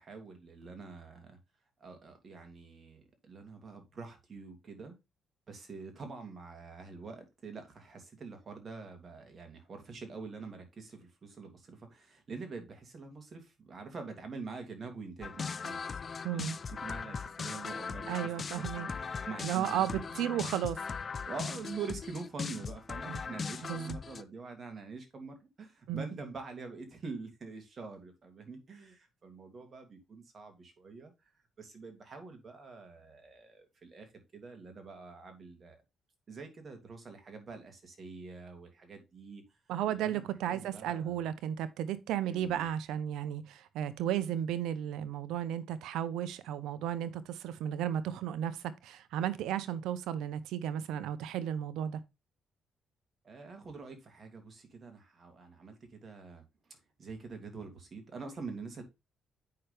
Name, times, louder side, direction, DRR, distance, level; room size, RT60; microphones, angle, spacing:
voice 1, 0.0-1.4 1.8-4.9 5.5-16.0 16.3-18.9 19.2-20.0 20.3-20.6 21.3-31.1 31.6-35.8 36.3-39.4 39.9-41.2 42.2-42.7 53.2-56.4 57.0-58.8, right 4 dB, 40° right, 2.7 m, -45 dB
sound 1, 15.2-24.2, left 5 dB, 40° left, 0.5 m, -39 dB
voice 2, 16.2-16.6 18.1-18.9 19.4-20.8 23.1-23.2 23.7-24.0 25.9-26.1 39.7-52.0, right 10 dB, 90° right, 0.7 m, -34 dB
8.5 x 5.8 x 3.4 m
cardioid pair, 90°, 0 cm